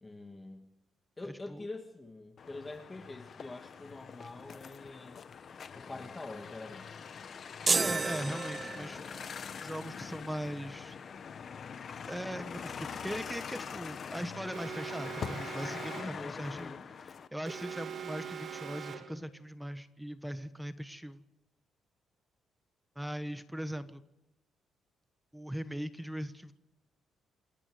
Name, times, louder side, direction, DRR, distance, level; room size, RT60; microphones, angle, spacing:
voice 1, 0.0-0.7 1.2-5.2 5.8-6.9 16.0-16.9, left 2 dB, 20° left, 4 dB, 2.0 m, -45 dB
voice 2, 1.2-1.7 7.4-10.9 12.0-21.2 22.9-24.0 25.3-26.5, equal, 5° right, 11 dB, 1.4 m, -40 dB
sound 1, 2.4-17.3, left 6 dB, 50° left, 1.2 m, -44 dB
sound 2, 7.7-9.2, right 4 dB, 30° right, 0.8 m, -31 dB
Alarm, 14.5-16.3 17.5-19.2, right 7 dB, 50° right, 2.4 m, -42 dB
28.5 x 9.9 x 9.4 m, 0.91 s
cardioid pair, 90°, 0 cm